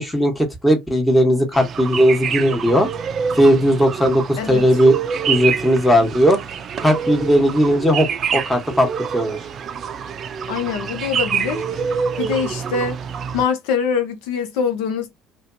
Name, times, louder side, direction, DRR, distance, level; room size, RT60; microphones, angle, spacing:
voice 1, 0.0-2.9 3.4-5.0 5.3-6.4 6.8-9.4, equal, 5° left, 1.1 m, -17 dB
sound 1, 1.5-13.4, right 7 dB, 50° right, 0.4 m, -26 dB
voice 2, 10.5-11.8 12.2-13.0 13.3-15.1, left 6 dB, 80° left, 0.6 m, -23 dB
2.5 x 2.3 x 2.6 m
supercardioid pair, 75°, 0 cm